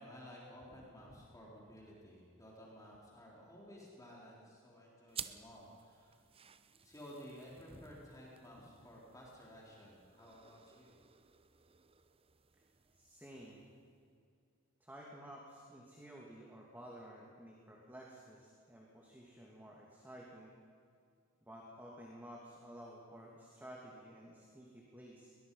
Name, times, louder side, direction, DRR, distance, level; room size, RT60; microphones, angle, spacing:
voice 1, 0.0-6.2 6.8-10.9, equal, 15° left, -4 dB, 3.9 m, -54 dB
sound 1, 5.1-14.1, right 8 dB, 25° right, 0.7 m, -54 dB
voice 2, 12.9-13.7 14.8-20.5 21.4-25.3, right 1 dB, 10° right, -2 dB, 2.4 m, -53 dB
22.0 x 21.5 x 5.6 m, 2.3 s
head